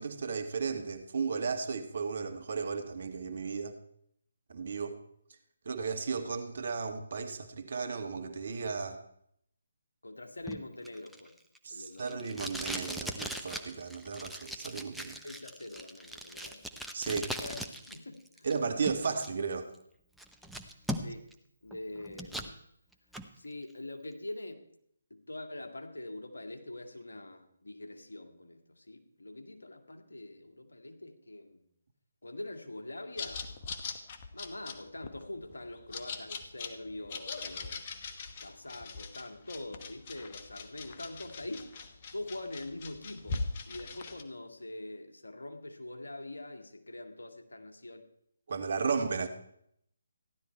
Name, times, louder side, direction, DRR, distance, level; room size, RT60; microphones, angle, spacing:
voice 1, 0.0-3.8 4.5-5.0 5.6-9.0 11.6-15.2 16.9-17.3 18.4-19.7 48.5-49.3, right 5 dB, 55° right, 7 dB, 1.6 m, -34 dB
voice 2, 10.0-11.3 11.7-12.4 15.2-16.6 17.1-17.6 17.9-18.6 19.0-19.2 21.0-21.3 21.6-22.6 23.3-24.6 25.1-31.6 32.2-33.5 34.3-37.8 38.4-48.0, left 2 dB, 75° left, 4 dB, 2.0 m, -44 dB
Packing tape duct tape, 10.5-18.0 18.3-19.3 19.7-19.8 20.2-21.3 21.7-22.5 22.9-23.3, right 1 dB, ahead, 0.8 m, -40 dB
sound 1, 33.2-44.2, left 4 dB, 35° left, 1.2 m, -41 dB
15.0 x 11.5 x 4.5 m, 0.71 s
figure-of-eight pair, 145°, 0 cm